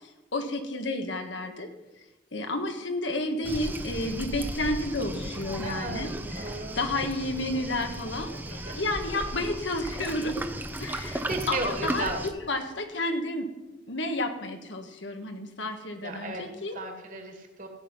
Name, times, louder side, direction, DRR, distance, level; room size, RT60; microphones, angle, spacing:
voice 1, 0.3-1.7 2.3-8.4 8.7-10.5 10.8-11.2 11.5-13.5 13.9-16.8, left 2 dB, 75° left, 5 dB, 1.7 m, -31 dB
Waves surf, 3.4-12.3, right 1 dB, 10° right, 0.7 m, -36 dB
voice 2, 5.6-6.8 8.5-8.8 10.9-12.3 16.0-16.4 16.7-17.7, right 2 dB, 45° right, 3 dB, 2.3 m, -35 dB
16.0 x 8.8 x 5.7 m, 1.1 s
head